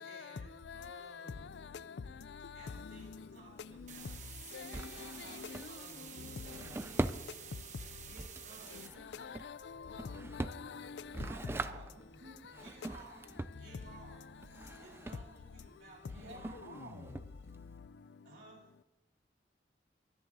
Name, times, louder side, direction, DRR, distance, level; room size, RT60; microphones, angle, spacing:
voice 1, 0.0-1.6 2.5-4.3 4.6-7.1 8.0-9.1 11.9-14.3 14.8-17.0 18.2-18.7, right 2 dB, 60° right, 4.3 m, -57 dB
voice 2, 0.7-1.0 4.5-5.1 5.4-5.6 9.2-11.0, left 6 dB, 75° left, 0.4 m, -46 dB
Drawer open or close, 2.6-17.8, right 2 dB, 15° right, 0.3 m, -44 dB
sound 1, 3.9-8.9, right 8 dB, 40° right, 1.1 m, -50 dB
voice 3, 11.2-11.9 16.2-17.1, right 2 dB, 90° right, 2.2 m, -50 dB
24.5 x 10.5 x 2.7 m
head